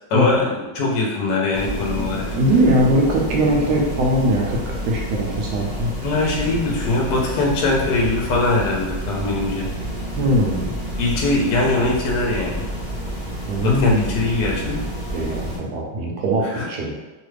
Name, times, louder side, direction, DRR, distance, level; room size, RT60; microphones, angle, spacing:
voice 1, 0.1-2.3 6.0-9.7 11.0-12.7 13.6-14.8 16.4-16.7, left 2 dB, 70° left, -2 dB, 1.1 m, -21 dB
sound 1, 1.5-15.6, right 1 dB, 10° left, 0.5 m, -29 dB
voice 2, 2.3-5.9 10.2-10.7 13.5-14.2 15.1-16.9, right 1 dB, 75° right, -1 dB, 1.1 m, -20 dB
3.1 x 2.2 x 3.2 m, 1.2 s
omnidirectional pair, 2.0 m